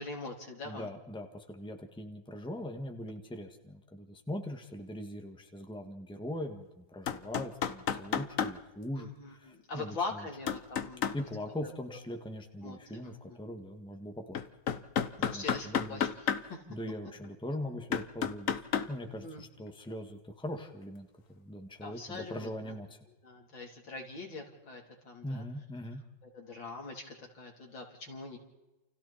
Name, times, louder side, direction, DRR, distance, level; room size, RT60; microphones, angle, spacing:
voice 1, 0.0-0.9 9.0-11.1 11.9-12.0 12.6-12.8 13.0-13.4 15.3-16.6 19.2-19.4 21.8-22.7 23.2-25.4 26.3-28.4, left 3 dB, 80° left, 1 dB, 4.4 m, -42 dB
voice 2, 0.6-10.3 11.1-14.4 15.2-16.0 16.7-18.5 18.9-21.1 21.3-23.0 25.2-26.0, left 1 dB, 5° left, 4 dB, 1.8 m, -41 dB
sound 1, 7.1-8.5 10.5-11.2 14.3-16.4 17.2-17.3 17.9-18.9 22.1-22.2, left 8 dB, 50° left, 1.2 m, -31 dB
29.0 x 29.0 x 4.4 m, 1.1 s
omnidirectional pair, 2.1 m